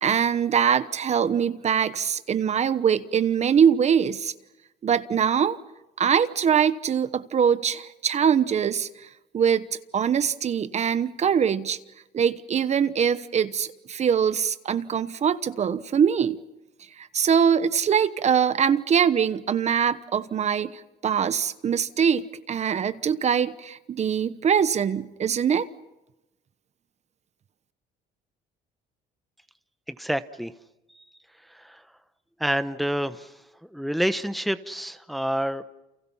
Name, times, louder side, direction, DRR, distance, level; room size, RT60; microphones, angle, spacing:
voice 1, 0.0-4.3 4.8-5.6 6.0-9.1 9.3-9.7 9.9-11.8 12.1-16.4 17.0-25.7, right 7 dB, 40° right, 1.1 m, -23 dB
voice 2, 29.9-30.5 30.9-31.0 31.5-31.8 32.4-33.3 33.7-35.6, equal, ahead, 1.0 m, -28 dB
30.0 x 28.5 x 5.7 m
cardioid pair, 110°, 17 cm